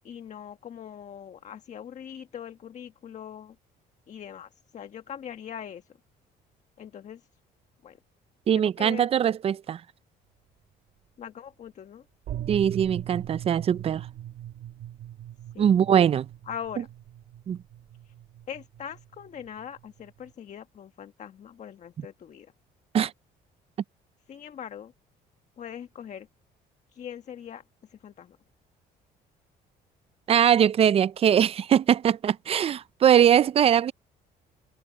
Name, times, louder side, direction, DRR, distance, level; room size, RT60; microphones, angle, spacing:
voice 1, 0.0-3.5 4.1-5.8 6.8-7.2 7.8-8.0 8.5-9.1 11.2-12.0 15.5-15.7 16.5-16.9 18.0-18.1 18.5-22.5 24.3-24.9 25.6-26.3 26.9-27.6 27.9-28.4, left 9 dB, 45° left, 1.2 m, -41 dB
voice 2, 8.5-9.8 12.5-14.1 15.6-16.3 17.5-17.6 22.9-23.1 30.3-33.9, right 9 dB, 35° right, 0.4 m, -21 dB
sound 1, 12.3-20.3, right 12 dB, 65° right, 2.2 m, -40 dB
cardioid pair, 110°, 17 cm